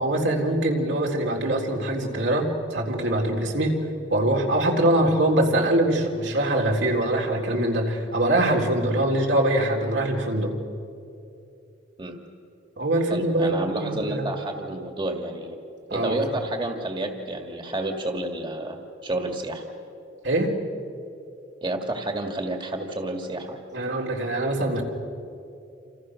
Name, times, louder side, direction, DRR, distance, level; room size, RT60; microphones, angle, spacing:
voice 1, 0.0-3.8 4.1-10.5 12.8-14.2 15.9-16.2 20.2-20.5 23.7-24.8, right 1 dB, 80° right, 0 dB, 3.8 m, -23 dB
voice 2, 13.1-15.6 15.9-19.6 21.6-23.6, right 1 dB, 25° right, 4 dB, 1.9 m, -30 dB
28.5 x 27.5 x 6.4 m, 2.7 s
head